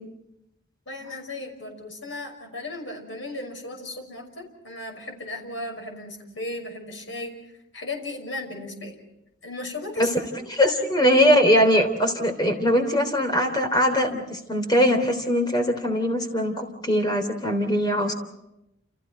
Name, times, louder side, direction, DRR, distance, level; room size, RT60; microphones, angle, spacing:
voice 1, 0.9-7.4 7.7-9.0 9.4-10.8, left 2 dB, 75° left, 3 dB, 5.9 m, -36 dB
voice 2, 10.5-18.1, equal, 20° left, 5 dB, 3.4 m, -21 dB
29.0 x 29.0 x 4.6 m, 0.86 s
head